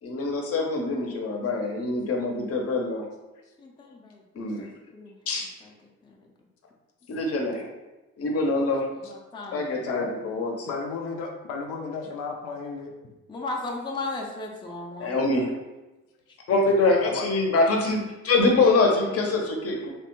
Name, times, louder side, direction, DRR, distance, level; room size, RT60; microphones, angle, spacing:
voice 1, 0.0-3.0 4.4-4.7 5.3-5.5 7.1-7.7 8.2-8.9 9.5-10.7 15.0-15.5 16.5-19.9, left 3 dB, 50° left, 1 dB, 0.7 m, -24 dB
voice 2, 3.6-4.7 4.9-5.2 5.6-5.7 6.0-6.3 9.0-9.8 13.3-15.2, left 2 dB, 15° left, -1 dB, 0.5 m, -36 dB
voice 3, 10.7-12.9 17.0-17.3, left 4 dB, 90° left, 0 dB, 0.5 m, -33 dB
3.1 x 2.1 x 3.0 m, 1.1 s
cardioid pair, 90°, 30 cm